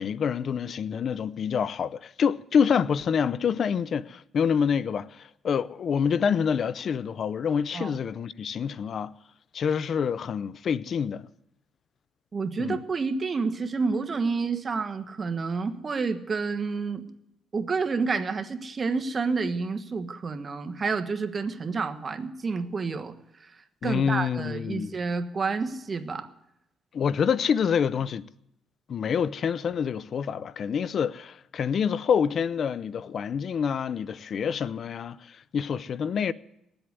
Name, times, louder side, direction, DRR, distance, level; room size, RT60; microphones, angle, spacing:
voice 1, 0.0-9.1 9.5-11.3 12.6-12.8 23.8-24.9 26.9-28.3 28.9-36.3, left 7 dB, 55° left, 0.5 m, -27 dB
voice 2, 12.3-17.0 17.5-23.5 23.8-26.3, right 4 dB, 35° right, 1.3 m, -29 dB
18.5 x 7.9 x 9.5 m
cardioid pair, 90°, 0 cm